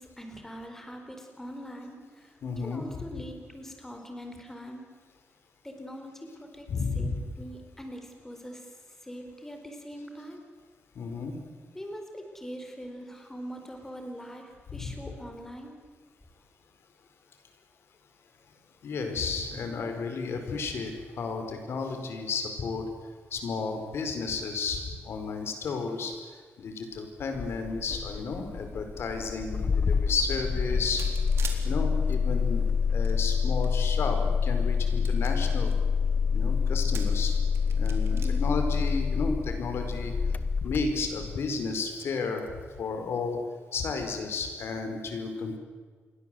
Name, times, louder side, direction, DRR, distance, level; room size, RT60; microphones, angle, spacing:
voice 1, 0.0-2.3 2.6-4.9 5.6-8.8 9.0-10.4 11.7-15.7 38.1-38.5, equal, 10° left, 4 dB, 4.3 m, -42 dB
voice 2, 2.4-3.0 6.7-7.2 10.9-11.4 14.7-14.9 18.8-22.8 23.3-26.1 26.6-31.0 31.6-35.8 36.3-37.4 37.7-40.1 40.6-42.5 42.8-43.4 43.7-45.6, left 4 dB, 70° left, 5 dB, 4.8 m, -32 dB
Engine starting, 27.3-41.5, left 5 dB, 40° left, 1.0 m, -27 dB
sound 1, 31.0-31.6 32.7-33.7 34.3-34.4 34.9-35.7 36.7-37.2 37.5-38.3, right 6 dB, 70° right, 3.9 m, -42 dB
28.5 x 22.5 x 7.9 m, 1.6 s
wide cardioid pair, 165°, 4 cm